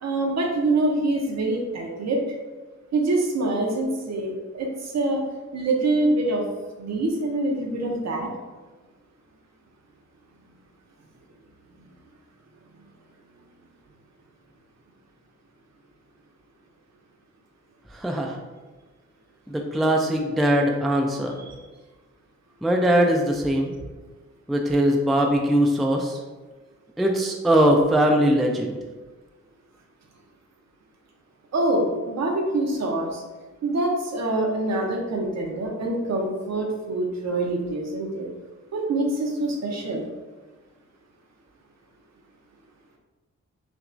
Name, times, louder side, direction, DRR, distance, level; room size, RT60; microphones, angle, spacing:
voice 1, 0.0-2.2 2.9-5.2 5.5-6.5 6.8-8.3 21.4-21.6 31.5-33.2 33.6-38.3 38.7-40.0, right 2 dB, 65° right, 1 dB, 0.8 m, -25 dB
voice 2, 18.0-18.3 19.5-21.3 22.6-23.7 24.5-26.2 27.0-28.8, right 1 dB, ahead, 1 dB, 0.3 m, -21 dB
5.9 x 2.3 x 2.5 m, 1.3 s
wide cardioid pair, 120°, 29 cm